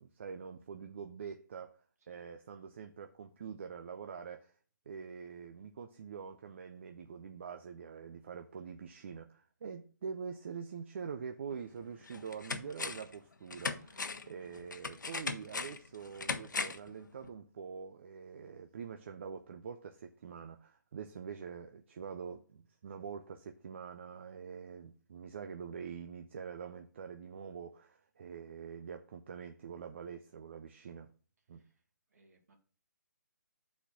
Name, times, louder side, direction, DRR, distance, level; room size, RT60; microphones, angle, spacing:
voice 1, 0.0-1.8 2.1-4.5 4.9-31.1 31.5-31.6, right 6 dB, 40° right, 0.5 m, -45 dB
sound 1, 11.5-11.6 12.1-13.2 13.5-16.9 17.2-17.3, left 4 dB, 75° left, 0.9 m, -39 dB
voice 2, 31.5-31.8 32.1-32.6, right 2 dB, 55° right, 2.1 m, -68 dB
5.7 x 4.3 x 6.1 m
hypercardioid pair, 160°, 10 cm